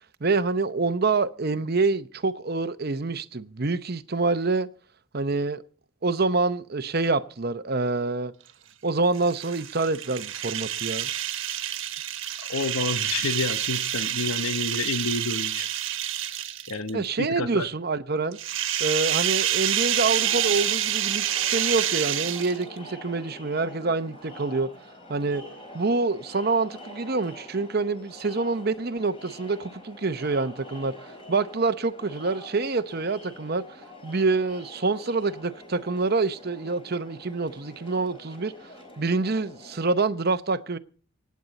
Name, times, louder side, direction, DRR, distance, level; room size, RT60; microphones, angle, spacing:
voice 1, 0.2-4.7 5.1-5.6 6.0-8.3 8.8-11.1 16.9-18.4 18.8-24.7 25.1-25.4 25.7-40.8, right 3 dB, 45° right, 0.8 m, -26 dB
sound 1, 9.1-16.9 18.3-22.8, right 11 dB, 65° right, 1.3 m, -28 dB
voice 2, 12.4-15.7 16.7-17.7, left 3 dB, 90° left, 0.9 m, -29 dB
Crowd, 19.9-39.8, left 1 dB, 25° left, 4.0 m, -46 dB
25.5 x 9.4 x 4.1 m
head